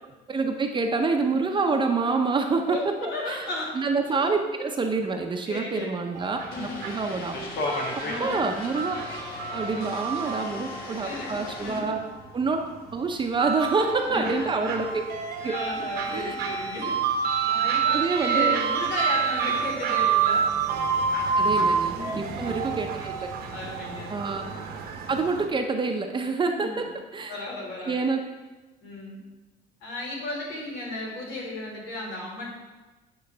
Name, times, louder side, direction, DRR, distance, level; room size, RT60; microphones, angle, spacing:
voice 1, 0.3-2.8 3.3-3.5 3.7-7.4 8.2-9.0 9.5-12.0 12.3-12.6 12.9-15.0 15.4-15.5 16.1-16.4 17.9-18.6 21.4-23.3 24.1-24.4 25.1-26.7 27.1-27.4 27.9-28.2, right 4 dB, 30° right, 4 dB, 0.6 m, -27 dB
voice 2, 2.7-3.8 4.1-4.3 5.5-5.9 6.5-6.9 8.0-8.6 10.2-10.4 10.7-12.1 14.1-14.7 15.4-17.0 17.5-20.8 21.9-22.5 23.5-24.1 24.5-24.6 26.4-26.8 27.3-28.1 28.8-29.2 29.8-32.5, left 2 dB, 90° left, -3 dB, 2.3 m, -35 dB
sound 1, 6.2-25.5, right 6 dB, 70° right, 0.9 m, -28 dB
sound 2, 6.5-11.8, left 2 dB, 65° left, 1.3 m, -35 dB
8.9 x 3.2 x 5.5 m, 1.2 s
cardioid pair, 110°, 17 cm